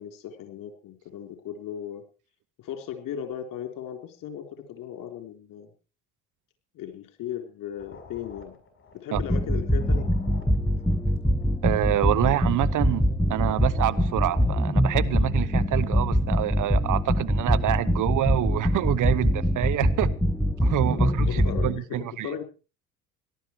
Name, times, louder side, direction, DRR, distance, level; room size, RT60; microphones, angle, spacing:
voice 1, 0.0-2.0 2.6-5.7 6.7-8.6 8.9-10.1 16.9-17.0 20.0-20.1 20.6-22.4, left 9 dB, 55° left, 3.9 m, -37 dB
sound 1, 7.7-15.1, left 4 dB, 30° left, 5.8 m, -50 dB
sound 2, 9.2-21.8, equal, 5° left, 1.5 m, -23 dB
voice 2, 11.6-13.0 13.3-20.1 20.6-22.3, right 13 dB, 50° right, 1.0 m, -26 dB
18.0 x 12.0 x 4.6 m
hypercardioid pair, 65°, 39 cm